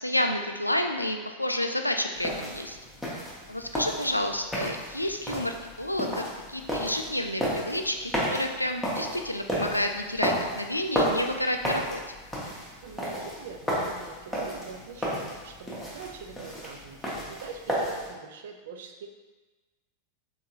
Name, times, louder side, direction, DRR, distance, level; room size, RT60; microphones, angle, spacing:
voice 1, 0.0-2.8 3.5-12.0, left 1 dB, 85° left, 5 dB, 0.3 m, -30 dB
sound 1, 2.1-18.1, equal, 5° left, 1.0 m, -33 dB
voice 2, 12.8-19.1, right 5 dB, 55° right, 5 dB, 0.4 m, -43 dB
3.7 x 3.5 x 2.9 m, 1.2 s
figure-of-eight pair, 90°, 0 cm